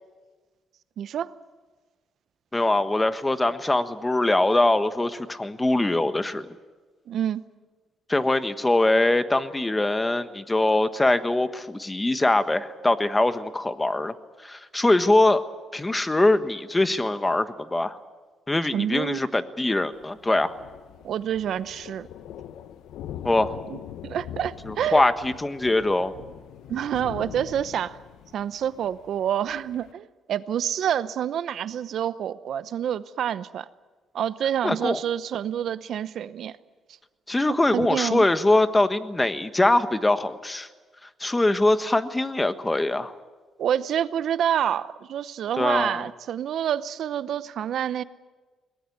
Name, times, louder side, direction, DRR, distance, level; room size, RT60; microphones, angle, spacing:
voice 1, 1.0-1.3 7.1-7.4 18.7-19.2 21.0-22.1 23.7-25.1 26.7-28.0 28.3-33.7 34.1-36.5 37.7-38.3 43.6-48.0, right 9 dB, 70° right, 15 dB, 0.8 m, -27 dB
voice 2, 2.5-6.5 8.1-14.1 14.4-15.4 15.7-18.0 18.5-20.6 23.2-23.5 24.6-26.1 34.6-35.0 37.3-40.7 41.2-43.1 45.6-46.1, left 2 dB, 15° left, 11 dB, 1.4 m, -22 dB
Thunder, 19.9-29.9, left 10 dB, 85° left, 0.9 m, -42 dB
22.0 x 18.5 x 9.5 m, 1.3 s
cardioid pair, 90°, 0 cm